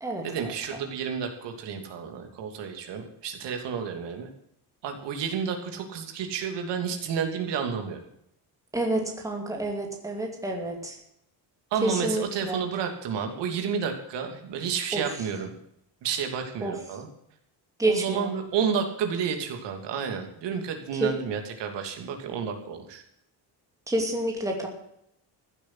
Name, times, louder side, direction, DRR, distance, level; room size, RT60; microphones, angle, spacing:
voice 1, 0.2-4.3 4.8-8.0 11.7-15.5 16.0-17.1 17.9-23.0, right 6 dB, 85° right, 4 dB, 3.0 m, -31 dB
voice 2, 8.7-11.0 11.8-12.6 14.9-15.0 16.6-16.7 17.8-18.3 21.0-21.1 23.9-24.7, right 2 dB, 10° right, 1 dB, 2.6 m, -28 dB
15.0 x 8.5 x 7.9 m, 0.74 s
cardioid pair, 175°, 41 cm